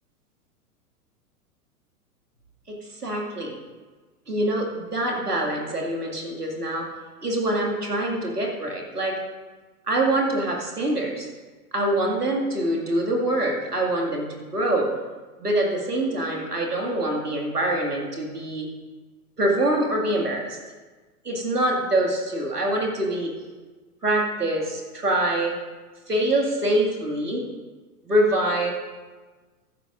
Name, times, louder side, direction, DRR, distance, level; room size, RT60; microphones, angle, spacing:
voice 1, 2.7-3.6 4.3-6.9 7.2-9.2 9.9-11.3 11.7-14.9 15.4-18.7 19.4-20.6 21.2-23.3 24.0-25.6 26.1-27.5 28.0-28.7, right 1 dB, 90° right, 0 dB, 2.2 m, -25 dB
14.5 x 11.5 x 2.5 m, 1.3 s
figure-of-eight pair, 95°, 45 cm